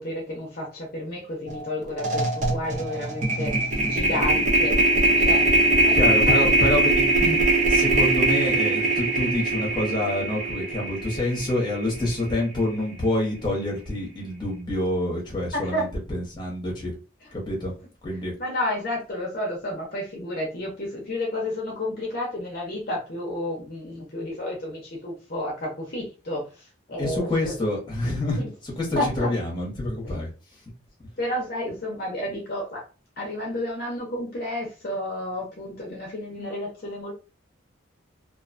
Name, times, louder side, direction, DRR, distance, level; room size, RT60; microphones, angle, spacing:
voice 1, 0.0-3.5 3.8-4.8 5.2-5.5 5.8-6.0 6.3-6.5 15.5-15.8 18.4-26.5 26.9-27.5 28.4-28.5 29.0-29.3 30.0-30.2 31.2-32.8 33.2-37.1, left 1 dB, 45° left, -1 dB, 0.7 m, -31 dB
sound 1, 1.5-1.6 1.9-12.2, right 2 dB, 35° right, 0.6 m, -22 dB
voice 2, 5.9-7.4 7.7-16.9 17.3-17.7 18.0-18.3 27.0-30.3, left 1 dB, 20° left, -2 dB, 1.0 m, -27 dB
2.5 x 2.3 x 2.5 m, 0.33 s
head